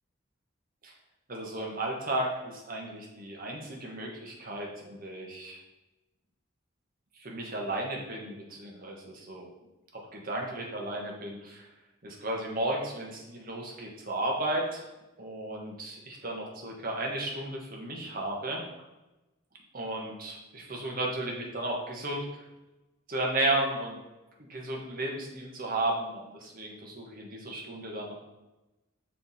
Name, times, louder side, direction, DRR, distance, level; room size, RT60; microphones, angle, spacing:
voice 1, 1.3-5.6 7.2-9.4 9.9-11.7 12.0-14.8 15.2-18.6 19.7-22.2 23.1-24.0 24.5-28.1, right 1 dB, 45° right, -1 dB, 1.3 m, -34 dB
6.0 x 4.5 x 4.1 m, 1.0 s
head